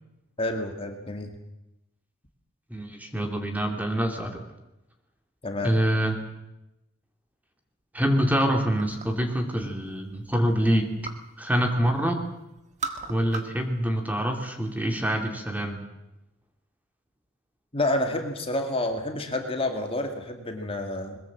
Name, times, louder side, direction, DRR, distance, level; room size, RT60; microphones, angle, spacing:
voice 1, 0.4-1.3 5.4-5.7 17.7-21.2, left 1 dB, 25° left, 4 dB, 2.2 m, -29 dB
voice 2, 2.7-4.4 5.6-6.2 7.9-11.0 11.4-12.2 13.1-15.8, equal, 10° right, 4 dB, 2.5 m, -25 dB
sound 1, 8.8-9.3 9.7-11.3 11.7-12.2 12.5-13.7 14.0-14.8, right 5 dB, 35° right, 1.7 m, -38 dB
21.5 x 21.5 x 7.5 m, 0.93 s
head